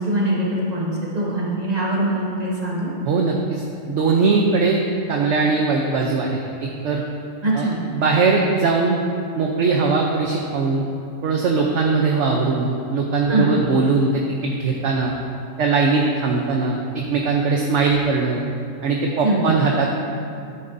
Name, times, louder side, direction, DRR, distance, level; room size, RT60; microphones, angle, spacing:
voice 1, 0.0-2.9 7.4-7.8 13.3-13.6 19.2-19.5, right 1 dB, 30° right, -6 dB, 2.0 m, -22 dB
voice 2, 3.0-3.6 3.9-4.8 5.1-7.0 7.5-7.7 7.9-9.0 9.4-10.8 11.2-15.1 15.6-18.4 18.8-19.9, right 4 dB, 60° right, 0 dB, 1.0 m, -20 dB
11.5 x 9.7 x 2.6 m, 2.5 s
omnidirectional pair, 1.5 m